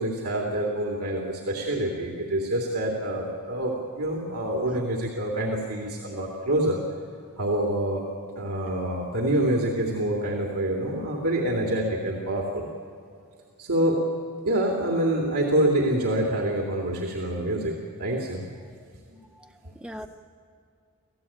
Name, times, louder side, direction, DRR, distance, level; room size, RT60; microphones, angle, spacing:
voice 1, 0.0-6.8 7.4-8.0 8.4-12.7 13.6-14.0 14.4-18.4 19.1-19.2, right 1 dB, 80° right, -1 dB, 2.8 m, -26 dB
voice 2, 19.3-20.1, equal, 5° right, 6 dB, 0.8 m, -41 dB
26.5 x 16.0 x 8.7 m, 2.4 s
head